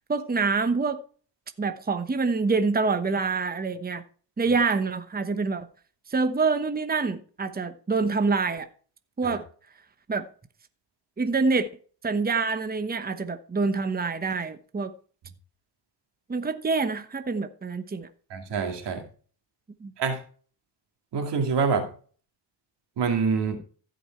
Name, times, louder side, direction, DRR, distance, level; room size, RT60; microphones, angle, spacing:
voice 1, 0.1-1.0 1.6-4.0 4.4-5.7 6.1-8.7 9.2-9.4 10.1-10.3 11.2-11.7 12.0-14.9 16.3-18.1 19.8-19.9, right 4 dB, 20° right, 1.0 m, -26 dB
voice 2, 18.3-19.0 20.0-20.2 21.1-21.9 23.0-23.6, right 5 dB, 85° right, 2.4 m, -26 dB
15.5 x 5.3 x 4.5 m
cardioid pair, 70°, 41 cm